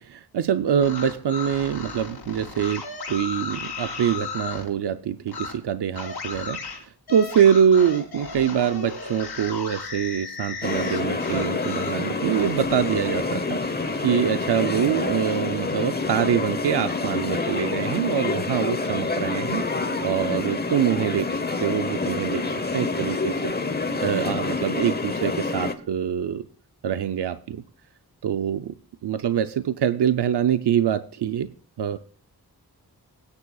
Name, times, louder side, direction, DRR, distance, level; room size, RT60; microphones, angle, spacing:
voice 1, 0.0-13.6 14.0-19.6 20.0-22.4 22.7-23.5 24.0-26.5 26.8-27.6 28.2-28.8 29.0-31.5 31.8-32.0, right 9 dB, 90° right, 10 dB, 0.6 m, -24 dB
sound 1, 0.7-4.7 5.3-5.5 5.9-12.0 12.3-14.0, left 5 dB, 75° left, 3.3 m, -35 dB
sound 2, 10.6-25.7, left 3 dB, 25° left, 0.9 m, -27 dB
21.0 x 9.7 x 2.3 m, 0.43 s
wide cardioid pair, 100°, 39 cm